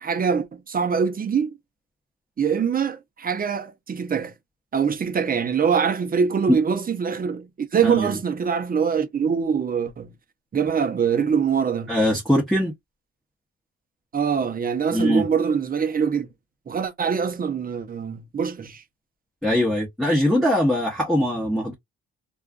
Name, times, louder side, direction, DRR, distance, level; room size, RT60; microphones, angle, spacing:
voice 1, 0.0-1.5 2.4-4.3 4.7-10.1 10.5-11.9 14.1-16.3 16.7-18.8, right 6 dB, 30° right, 0.6 m, -24 dB
voice 2, 11.9-12.7 14.9-15.2 19.4-21.7, left 1 dB, ahead, 0.8 m, -21 dB
2.4 x 2.3 x 2.3 m
cardioid pair, 90°, 30 cm